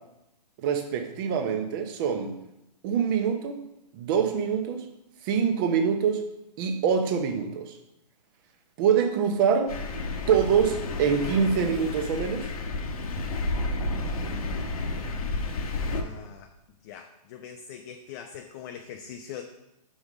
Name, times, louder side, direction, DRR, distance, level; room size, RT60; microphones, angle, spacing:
voice 1, 0.6-2.3 2.8-3.6 3.9-4.8 5.2-6.2 6.6-7.7 8.8-9.7 10.3-12.5, right 7 dB, 30° right, 6 dB, 0.8 m, -25 dB
Thunder, 9.7-16.0, left 2 dB, 60° left, 1.0 m, -31 dB
voice 2, 15.8-16.5 16.8-19.4, left 8 dB, 25° left, 4 dB, 0.4 m, -42 dB
5.1 x 4.9 x 5.0 m, 0.86 s
hypercardioid pair, 135°, 21 cm